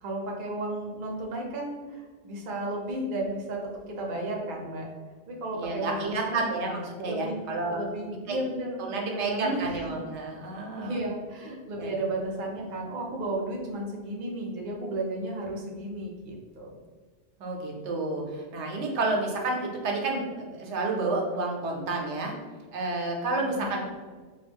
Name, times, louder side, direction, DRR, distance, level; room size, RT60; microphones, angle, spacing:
voice 1, 0.0-3.6 3.9-4.9 5.3-6.4 7.0-7.4 7.7-9.9 10.8-16.7 23.4-23.8, right 1 dB, 60° right, -1 dB, 0.6 m, -33 dB
voice 2, 5.5-7.8 8.3-8.4 8.9-11.0 11.8-12.0 17.4-22.3 22.7-23.9, right 3 dB, 85° right, 0 dB, 0.9 m, -30 dB
2.2 x 2.1 x 3.4 m, 1.4 s
omnidirectional pair, 1.1 m